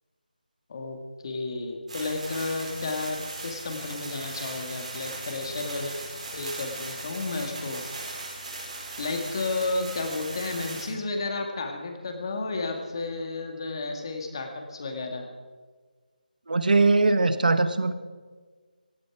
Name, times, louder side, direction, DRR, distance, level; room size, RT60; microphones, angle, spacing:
voice 1, 1.2-7.8 9.0-15.2, left 3 dB, 30° left, 4 dB, 2.0 m, -32 dB
sound 1, 1.9-10.9, right 2 dB, 45° right, 4.7 m, -38 dB
voice 2, 16.5-17.9, right 3 dB, 65° right, 11 dB, 1.2 m, -21 dB
18.0 x 13.5 x 4.9 m, 1.4 s
figure-of-eight pair, 170°, 5 cm